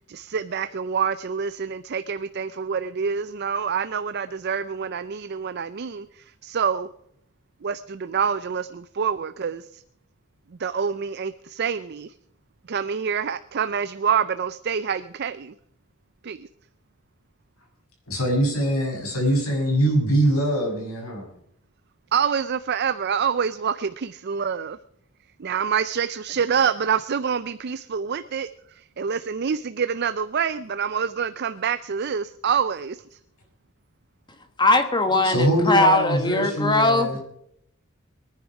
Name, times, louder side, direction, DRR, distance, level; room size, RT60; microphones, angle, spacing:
voice 1, 0.1-6.9 7.6-9.8 10.6-12.1 12.7-15.5 16.2-16.5 22.1-24.8 25.4-28.5 28.8-33.0, right 7 dB, 50° right, 13 dB, 0.5 m, -26 dB
voice 2, 18.1-21.3 35.2-37.2, right 1 dB, 85° left, 0 dB, 6.3 m, -23 dB
voice 3, 34.6-37.2, left 2 dB, 20° left, 8 dB, 1.4 m, -20 dB
22.0 x 10.0 x 4.8 m, 0.74 s
head